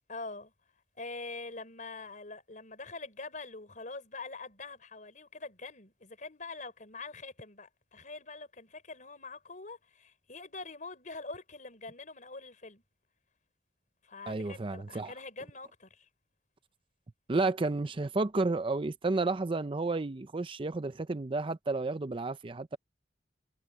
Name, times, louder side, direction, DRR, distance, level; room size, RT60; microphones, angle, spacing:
voice 1, 0.1-0.5 1.0-12.8 14.0-16.1, left 3 dB, 45° left, 4.7 m, -44 dB
voice 2, 14.3-15.1 17.3-22.8, right 3 dB, 30° right, 0.5 m, -31 dB
head